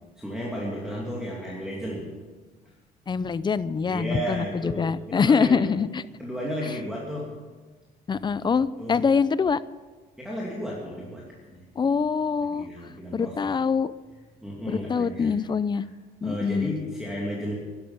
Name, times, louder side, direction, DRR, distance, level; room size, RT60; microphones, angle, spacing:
voice 1, 0.2-2.2 3.9-5.7 6.2-7.5 8.8-9.0 10.2-11.6 12.5-13.5 14.4-15.4 15.7-15.8 16.2-17.5, equal, 5° right, -3 dB, 2.6 m, -33 dB
voice 2, 3.1-6.0 8.1-9.6 11.8-12.7 13.1-13.9 14.7-15.8 16.2-16.7, left 5 dB, 25° left, 17 dB, 0.5 m, -24 dB
12.5 x 11.5 x 7.3 m, 1.3 s
cardioid pair, 110°, 17 cm